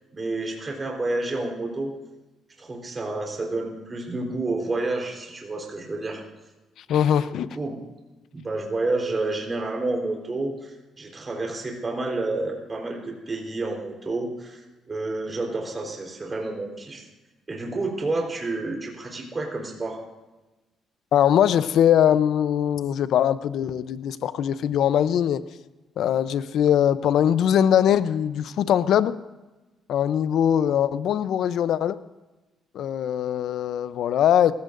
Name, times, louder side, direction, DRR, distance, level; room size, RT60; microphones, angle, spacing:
voice 1, 0.1-1.9 2.6-6.2 7.5-7.8 8.3-17.1 17.5-20.0, right 2 dB, 30° right, 0 dB, 4.0 m, -29 dB
voice 2, 6.9-7.6 21.1-25.4 26.0-29.1 29.9-32.0 32.7-34.5, left 10 dB, 75° left, 14 dB, 0.7 m, -21 dB
26.5 x 15.5 x 2.6 m, 1.1 s
cardioid pair, 90°, 0 cm